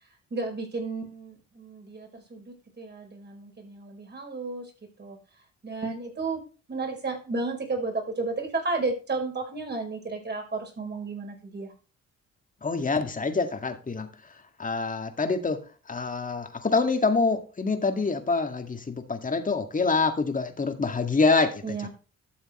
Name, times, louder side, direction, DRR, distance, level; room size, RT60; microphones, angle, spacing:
voice 1, 0.3-4.7 5.0-5.2 5.6-6.4 6.7-11.7 21.6-21.9, right 3 dB, 35° right, 3 dB, 5.1 m, -33 dB
voice 2, 12.6-14.1 14.6-15.6 15.9-21.9, left 4 dB, 25° left, 6 dB, 2.1 m, -26 dB
12.5 x 7.1 x 3.2 m, 0.34 s
cardioid pair, 90°, 30 cm